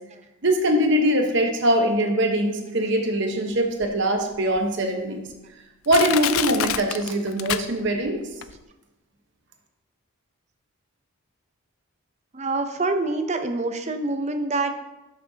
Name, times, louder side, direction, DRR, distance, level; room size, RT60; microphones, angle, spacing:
voice 1, 0.4-5.2 5.9-8.2, right 1 dB, 55° right, 3 dB, 1.1 m, -22 dB
Crushing, 3.8-3.9 4.6-4.7 5.3-5.4 5.9-8.1 8.4-8.5, left 11 dB, 70° left, 0.4 m, -27 dB
voice 2, 12.3-14.7, right 2 dB, 30° right, 7 dB, 0.6 m, -26 dB
12.0 x 6.4 x 2.8 m, 1.0 s
head